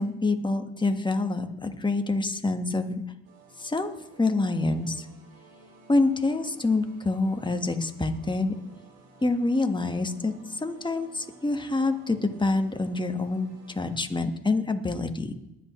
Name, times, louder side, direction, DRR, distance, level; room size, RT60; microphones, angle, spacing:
voice 1, 0.0-3.0 3.6-3.9 4.2-5.0 5.9-8.5 9.2-10.3 10.6-15.3, left 3 dB, 15° left, 6 dB, 1.5 m, -26 dB
sound 1, 3.2-14.0, right 4 dB, 85° right, 2.8 m, -53 dB
21.5 x 8.3 x 3.2 m, 0.84 s
hypercardioid pair, 55°, 35 cm